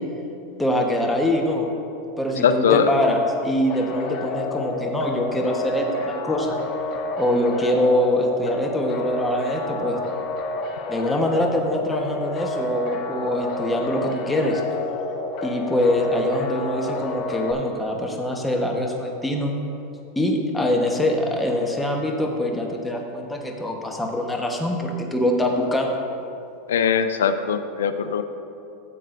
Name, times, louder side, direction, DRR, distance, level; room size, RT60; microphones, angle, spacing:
voice 1, 0.6-1.7 2.2-6.6 7.2-10.0 10.9-14.6 15.4-19.5 20.1-26.0, left 1 dB, 10° left, 1 dB, 1.1 m, -23 dB
voice 2, 2.4-2.9 26.7-28.2, left 7 dB, 85° left, 10 dB, 0.5 m, -20 dB
sound 1, 3.7-17.5, left 2 dB, 45° left, 0.7 m, -30 dB
13.5 x 7.6 x 2.6 m, 2.7 s
hypercardioid pair, 115°, 0 cm